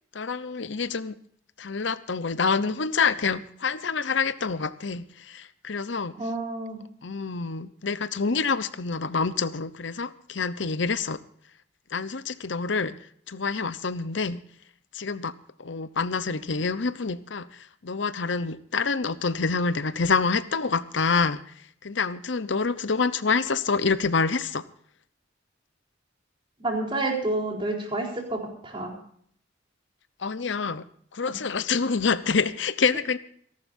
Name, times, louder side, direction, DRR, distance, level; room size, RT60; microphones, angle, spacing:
voice 1, 0.1-1.2 1.6-6.1 7.0-11.2 11.9-14.4 14.9-15.3 15.6-24.7 30.2-30.8 31.1-33.2, left 4 dB, 65° left, 15 dB, 0.8 m, -27 dB
voice 2, 6.2-6.8 26.6-29.0, right 2 dB, 25° right, 0 dB, 4.1 m, -29 dB
27.5 x 11.5 x 2.6 m, 0.62 s
head